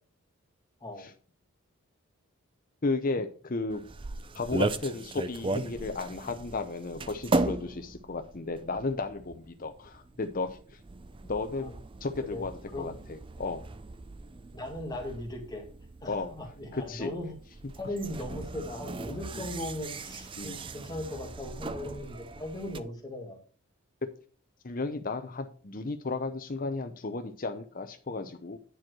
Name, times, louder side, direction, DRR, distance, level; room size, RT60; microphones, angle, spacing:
voice 1, 2.8-3.8 4.3-10.8 11.3-11.7 12.0-12.5 12.8-13.6 16.1-16.3 16.7-17.1 19.3-19.4 20.4-20.7 24.6-28.6, left 3 dB, 40° left, 8 dB, 0.7 m, -34 dB
sound 1, 3.7-22.8, right 2 dB, 25° right, 0.4 m, -37 dB
voice 2, 14.5-15.6 16.0-17.4 17.8-23.4, left 1 dB, 20° left, 1 dB, 2.0 m, -38 dB
10.0 x 4.5 x 6.1 m, 0.41 s
head